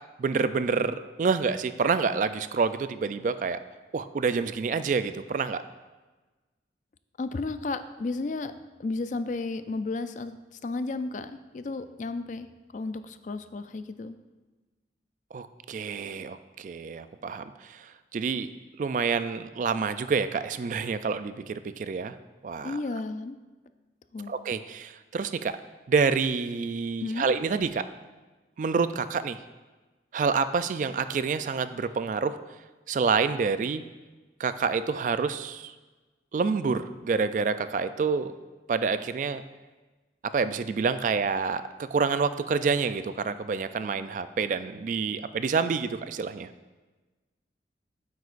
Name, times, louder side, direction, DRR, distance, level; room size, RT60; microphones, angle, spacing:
voice 1, 0.2-3.6 3.9-5.6 15.3-18.5 18.8-22.1 22.4-22.8 24.3-25.5 25.9-27.9 28.6-29.4 30.1-32.4 32.9-33.8 34.4-35.7 36.3-38.3 38.7-39.4 40.3-41.6 41.9-46.5, right 5 dB, 45° right, 12 dB, 0.3 m, -28 dB
voice 2, 7.2-8.5 8.8-10.4 10.6-12.5 12.7-14.2 22.6-23.4 24.1-24.3 27.0-27.3, left 3 dB, 45° left, 11 dB, 0.3 m, -33 dB
9.5 x 7.9 x 2.5 m, 1.2 s
head